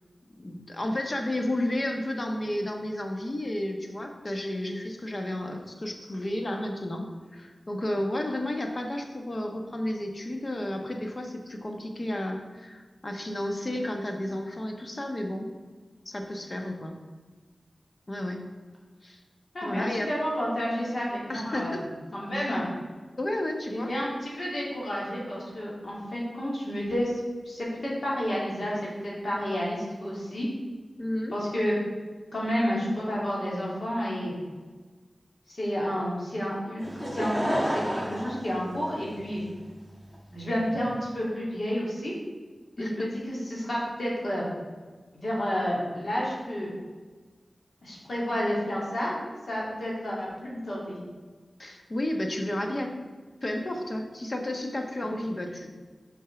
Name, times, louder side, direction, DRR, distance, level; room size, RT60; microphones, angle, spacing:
voice 1, 0.4-15.5 16.0-17.0 18.1-18.4 19.0-19.2 19.6-20.1 21.3-21.8 22.3-22.5 23.2-23.9 31.0-31.3 42.8-43.1 51.6-53.0 53.4-55.7, left 1 dB, 45° left, 3 dB, 1.2 m, -32 dB
voice 2, 19.5-21.8 22.1-22.6 23.7-27.2 27.5-30.5 31.3-31.8 32.3-34.3 35.5-39.4 40.3-42.1 42.8-44.5 45.1-46.7 47.8-51.0, equal, 70° left, -5 dB, 2.4 m, -30 dB
Laughter / Crowd, 36.8-39.4 40.1-40.2, equal, ahead, 1.5 m, -30 dB
5.5 x 5.4 x 5.9 m, 1.4 s
cardioid pair, 45°, 0 cm